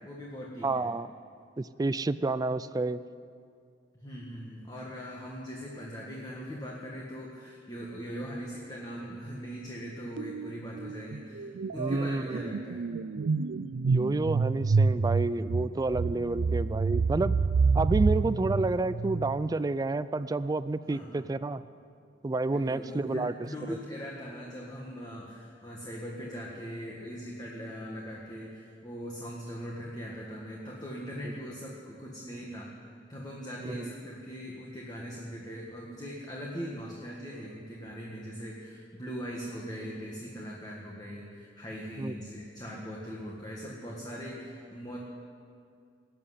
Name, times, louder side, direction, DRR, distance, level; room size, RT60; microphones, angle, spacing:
voice 1, 0.0-0.9 4.0-12.9 20.9-21.3 22.5-32.7 33.1-45.0, equal, 20° left, -3 dB, 1.7 m, -40 dB
voice 2, 0.6-1.1 1.6-3.0 11.8-12.5 13.8-17.3 17.7-21.6 22.2-23.3 23.7-23.8 33.6-33.9 42.0-42.1, right 2 dB, 20° right, 15 dB, 0.3 m, -29 dB
sound 1, 10.2-10.5 10.8-19.5, right 4 dB, 85° right, 0.4 m, -28 dB
18.5 x 7.7 x 9.8 m, 2.3 s
head